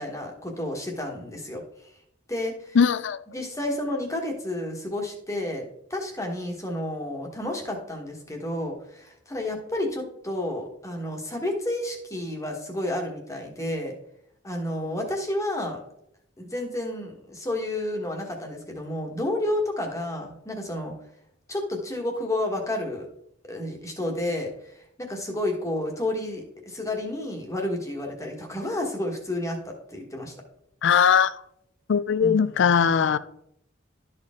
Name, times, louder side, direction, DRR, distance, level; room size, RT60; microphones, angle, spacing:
voice 1, 0.0-1.6 2.3-2.8 3.3-5.6 5.9-13.9 14.4-15.8 16.4-20.9 21.5-23.1 23.5-30.3 32.2-32.5, left 1 dB, 15° left, 1.4 m, -31 dB
voice 2, 2.7-3.2 30.8-31.3 31.9-33.2, left 7 dB, 65° left, 0.4 m, -20 dB
12.5 x 4.3 x 3.6 m
head